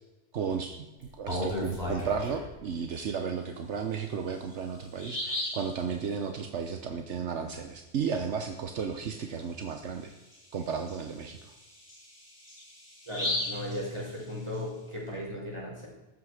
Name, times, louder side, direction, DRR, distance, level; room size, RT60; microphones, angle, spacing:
voice 1, 0.3-10.1 10.5-11.5, right 6 dB, 75° right, 6 dB, 1.2 m, -34 dB
Bird vocalization bird call bird song, 1.0-2.5 4.0-4.1 4.5-4.6 5.0-5.7 9.1-9.3 9.7-9.8 10.3-14.5, left 1 dB, 35° left, 6.3 m, -35 dB
voice 2, 13.1-15.9, left 1 dB, 25° right, -4 dB, 5.8 m, -36 dB
15.0 x 12.5 x 5.0 m, 1.1 s
omnidirectional pair, 1.2 m